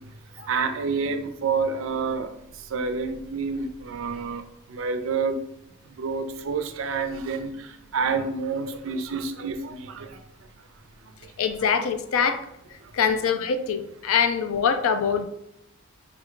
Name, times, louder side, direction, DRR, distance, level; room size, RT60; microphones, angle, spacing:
voice 1, 0.5-2.3 2.6-4.4 4.7-5.4 6.0-10.2 12.8-13.2, right 5 dB, 65° right, 8 dB, 0.4 m, -28 dB
voice 2, 11.4-12.4 12.9-15.3, left 6 dB, 75° left, 9 dB, 0.4 m, -24 dB
3.4 x 2.2 x 3.7 m, 0.78 s
head